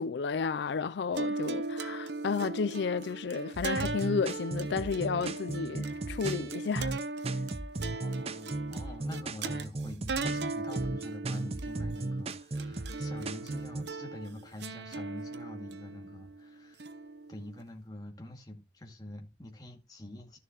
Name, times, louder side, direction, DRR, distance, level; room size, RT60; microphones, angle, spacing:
voice 1, 0.0-7.0 7.3-7.4, left 5 dB, 75° left, 0.4 m, -32 dB
sound 1, 1.2-17.6, right 3 dB, 75° right, 0.9 m, -38 dB
sound 2, 3.5-13.8, right 2 dB, 35° right, 0.6 m, -36 dB
voice 2, 7.9-16.9 17.3-20.4, left 1 dB, 20° left, 2.1 m, -46 dB
13.0 x 6.7 x 2.9 m
head